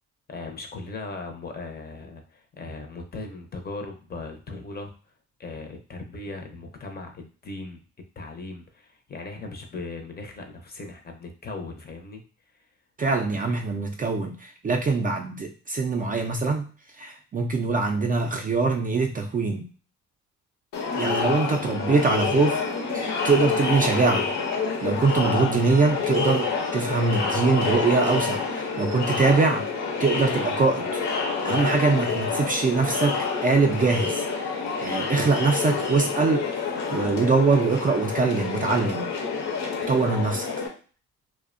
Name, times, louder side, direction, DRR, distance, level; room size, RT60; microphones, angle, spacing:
voice 1, 0.3-4.9 5.4-7.8 8.2-12.2 12.6-12.7, left 3 dB, 30° left, 4 dB, 0.6 m, -38 dB
voice 2, 13.0-16.6 17.0-19.6 20.9-22.6 22.9-24.3 24.8-29.7 30.0-31.0 31.4-39.1 39.9-40.5, right 4 dB, 30° right, 3 dB, 0.4 m, -23 dB
Crowd, 20.7-40.7, left 4 dB, 70° left, 0.7 m, -28 dB
2.6 x 2.1 x 2.4 m, 0.39 s
cardioid pair, 90°, 30 cm